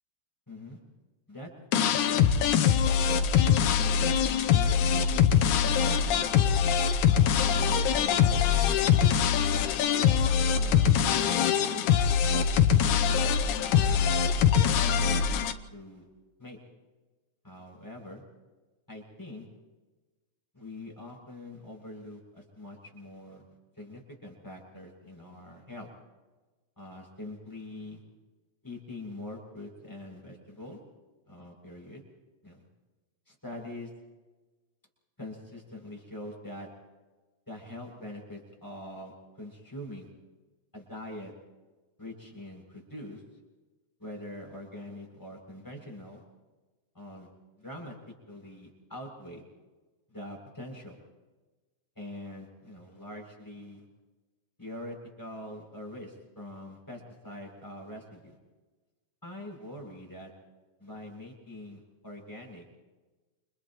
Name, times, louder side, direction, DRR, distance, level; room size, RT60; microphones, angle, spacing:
voice 1, 0.5-0.8 1.3-1.5 1.8-2.3 3.0-3.7 4.5-6.5 7.1-9.2 9.9-10.2 10.5-11.9 12.3-12.8 13.6-14.1 14.8-16.1 16.4-16.6 17.4-18.2 18.9-19.5 20.5-23.4 23.7-25.9 26.8-28.0 28.6-30.8 31.3-32.0 32.4-32.6 33.3-33.9 35.2-36.7 37.5-40.1 40.7-41.3 42.0-43.2 44.0-46.2 46.9-47.3 47.6-49.4 50.1-51.0 52.0-53.9 54.6-58.4 59.2-60.3 60.8-62.6, left 1 dB, 5° left, -1 dB, 7.1 m, -44 dB
sound 1, 1.7-15.5, left 8 dB, 85° left, 2.3 m, -23 dB
30.0 x 29.0 x 3.1 m, 1.2 s
omnidirectional pair, 3.4 m